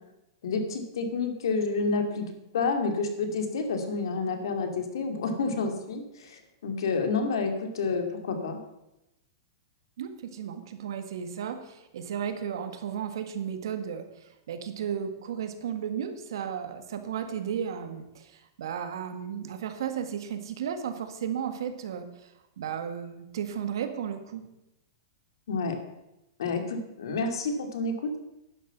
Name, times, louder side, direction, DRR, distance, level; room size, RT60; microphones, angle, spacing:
voice 1, 0.4-8.6 25.5-25.8 26.4-28.2, left 4 dB, 75° left, 6 dB, 2.5 m, -29 dB
voice 2, 10.0-22.3 22.6-24.4, right 8 dB, 65° right, 7 dB, 1.8 m, -34 dB
11.5 x 9.9 x 6.0 m, 0.91 s
supercardioid pair, 170°, 2 cm